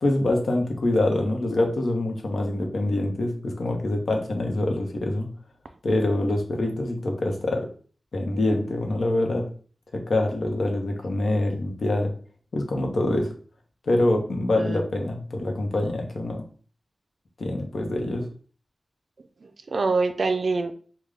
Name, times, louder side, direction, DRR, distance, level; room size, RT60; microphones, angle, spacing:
voice 1, 0.0-5.3 5.8-7.7 8.1-9.5 9.9-12.1 12.5-13.3 13.8-16.4 17.4-18.3, left 1 dB, 70° left, 2 dB, 0.8 m, -25 dB
voice 2, 14.6-14.9 19.4-20.7, right 3 dB, 60° right, 8 dB, 0.4 m, -25 dB
3.7 x 2.2 x 3.3 m, 0.42 s
wide cardioid pair, 80°, 0 cm